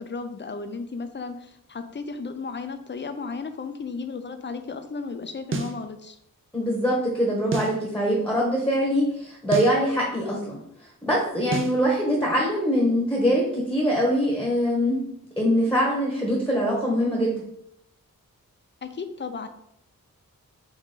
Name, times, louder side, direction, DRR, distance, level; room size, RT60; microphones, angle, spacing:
voice 1, 0.0-6.2 18.8-19.5, left 4 dB, 35° left, 8 dB, 0.4 m, -34 dB
sound 1, 5.5-5.8 7.5-7.8 9.5-9.8 11.5-11.8, right 4 dB, 35° right, 0.4 m, -29 dB
voice 2, 6.5-10.6 11.0-15.0 15.4-17.4, equal, 5° left, -3 dB, 1.1 m, -23 dB
4.0 x 3.1 x 3.7 m, 0.74 s
wide cardioid pair, 80°, 34 cm